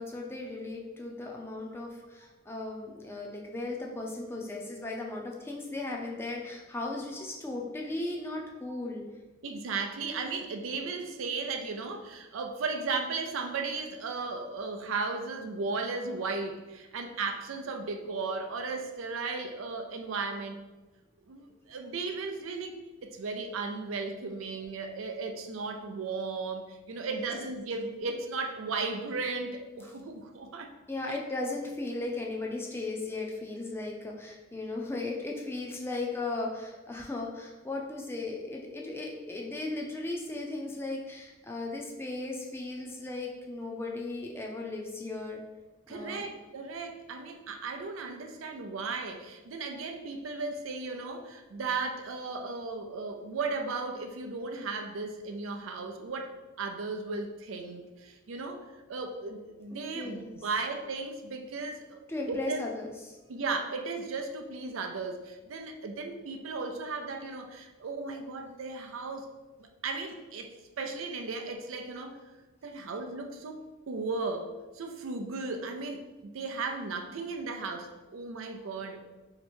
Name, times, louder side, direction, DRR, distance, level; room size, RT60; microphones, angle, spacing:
voice 1, 0.0-9.1 27.0-27.3 30.9-45.4 45.9-46.3 59.7-60.4 62.1-63.2, left 2 dB, 10° left, -1 dB, 0.5 m, -36 dB
voice 2, 9.4-20.7 21.3-30.7 31.1-31.2 45.9-56.3 56.6-58.6 58.9-62.0 62.3-62.6 63.3-69.3 69.8-72.2 72.6-79.1, right 4 dB, 90° right, 4 dB, 0.5 m, -36 dB
3.2 x 2.9 x 4.3 m, 1.1 s
head